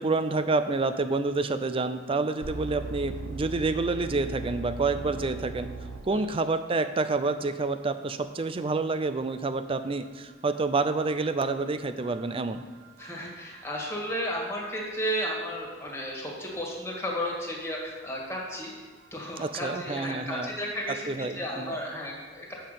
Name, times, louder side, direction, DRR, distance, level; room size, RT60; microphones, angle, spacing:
voice 1, 0.0-5.7 6.0-12.6 19.4-20.5 20.9-21.8, right 3 dB, 30° right, 10 dB, 0.4 m, -28 dB
sound 1, 2.4-6.4 12.0-13.5 13.7-13.9 20.0-20.1, right 3 dB, 75° right, 0.6 m, -39 dB
voice 2, 13.0-18.7 19.1-22.5, equal, 15° left, -2 dB, 1.9 m, -33 dB
7.4 x 5.9 x 6.7 m, 1.4 s
head